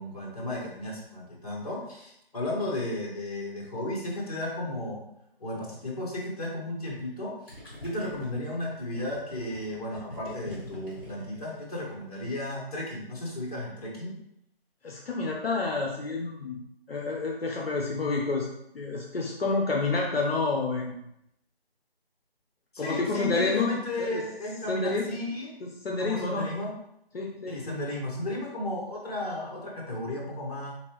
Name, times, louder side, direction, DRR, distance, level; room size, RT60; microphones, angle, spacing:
voice 1, 0.0-5.0 5.4-7.5 7.8-14.2 22.7-25.5 26.0-26.7 27.5-30.8, left 1 dB, 40° left, -4 dB, 1.1 m, -34 dB
Gurgling, 7.5-12.2, equal, 5° left, 1.2 m, -45 dB
voice 2, 14.8-16.6 16.9-18.5 18.7-21.0 22.8-24.2 24.7-25.1 25.6-26.5 27.1-27.8, left 3 dB, 70° left, -1 dB, 0.6 m, -29 dB
3.8 x 2.9 x 3.0 m, 0.80 s
figure-of-eight pair, 160°, 31 cm